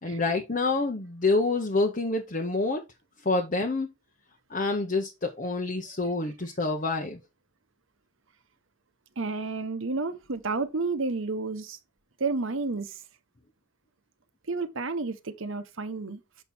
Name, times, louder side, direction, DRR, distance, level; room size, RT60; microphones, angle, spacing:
voice 1, 0.0-2.8 3.2-3.9 4.5-7.2, left 3 dB, 35° left, 0.9 m, -27 dB
voice 2, 9.2-11.8 12.2-13.0 14.5-16.2, right 3 dB, 60° right, 1.0 m, -31 dB
7.4 x 5.4 x 4.3 m
head